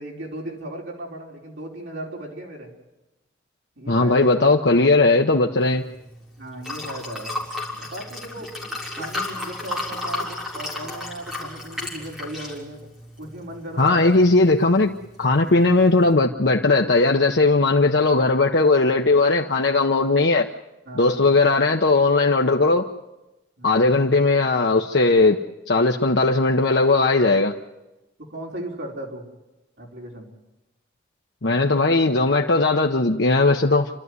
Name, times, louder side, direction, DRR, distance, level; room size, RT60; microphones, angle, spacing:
voice 1, 0.0-2.7 3.8-4.5 6.4-7.3 7.8-8.5 8.9-12.8 13.2-14.1 20.8-21.4 23.6-23.9 28.3-29.3 29.8-30.3, right 1 dB, 75° right, -1 dB, 4.7 m, -36 dB
voice 2, 3.9-5.8 13.8-20.5 20.9-22.9 23.6-25.4 25.7-27.5 31.4-33.9, left 3 dB, 70° left, 1 dB, 0.9 m, -18 dB
Liquid, 5.6-16.1, left 2 dB, 5° right, 3.7 m, -34 dB
28.0 x 12.5 x 9.6 m, 1.0 s
head